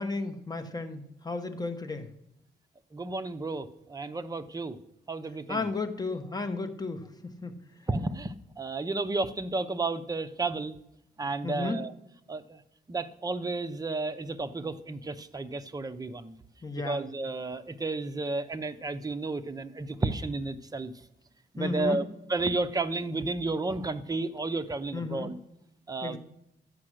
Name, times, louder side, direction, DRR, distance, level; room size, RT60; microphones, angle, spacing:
voice 1, 0.0-2.1 5.5-7.6 11.4-11.8 16.6-17.0 21.6-22.0 24.9-25.3 26.0-26.2, left 3 dB, 20° left, 6 dB, 1.1 m, -33 dB
voice 2, 2.9-4.8 5.1-5.6 7.9-10.8 11.2-11.9 12.3-12.6 12.9-16.3 16.8-20.9 21.5-25.4 25.9-26.2, right 3 dB, 20° right, 9 dB, 0.7 m, -32 dB
11.5 x 8.6 x 6.4 m, 0.79 s
cardioid pair, 110°, 18 cm